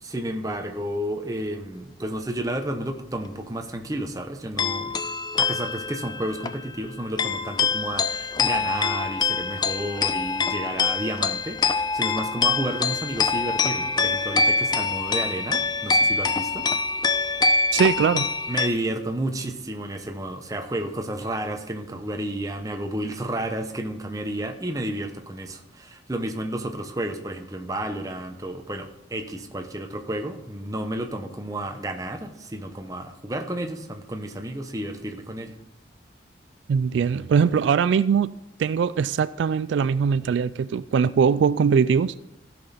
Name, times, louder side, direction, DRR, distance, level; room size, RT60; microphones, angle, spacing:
voice 1, 0.0-5.0 5.4-16.7 18.5-35.5, right 1 dB, 20° right, 5 dB, 0.8 m, -31 dB
sound 1, 4.6-18.7, left 4 dB, 20° left, 0.3 m, -25 dB
voice 2, 17.7-18.3 36.7-38.3 38.6-42.1, right 6 dB, 75° right, 15 dB, 0.3 m, -21 dB
15.5 x 6.0 x 4.1 m, 0.85 s
head